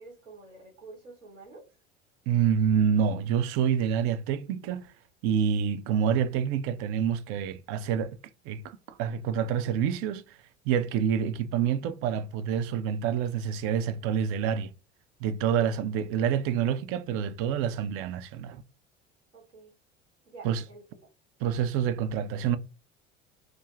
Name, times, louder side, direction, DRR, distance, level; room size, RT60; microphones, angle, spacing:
voice 1, 0.0-1.6 19.3-19.7 20.3-21.1, right 3 dB, 80° right, 1.2 m, -49 dB
voice 2, 2.3-4.9 5.2-8.2 8.5-10.4 10.7-14.7 15.2-18.6 20.4-20.6 21.4-22.6, right 8 dB, 40° right, 0.4 m, -27 dB
2.4 x 2.3 x 3.0 m
figure-of-eight pair, 70°, 35 cm